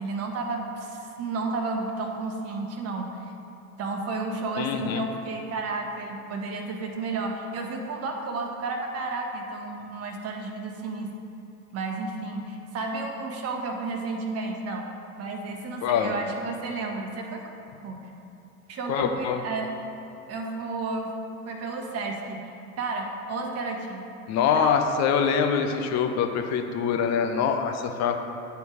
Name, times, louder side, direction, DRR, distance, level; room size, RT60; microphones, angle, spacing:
voice 1, 0.0-3.1 3.8-11.1 11.7-14.9 15.2-17.4 17.8-18.0 18.7-19.7 20.3-21.1 21.4-24.1 24.5-24.7, right 3 dB, 35° right, 2 dB, 1.2 m, -32 dB
voice 2, 4.6-5.0 15.8-16.1 18.9-19.4 24.3-28.2, left 7 dB, 40° left, 5 dB, 0.8 m, -24 dB
9.4 x 4.6 x 4.8 m, 2.8 s
figure-of-eight pair, 80°, 43 cm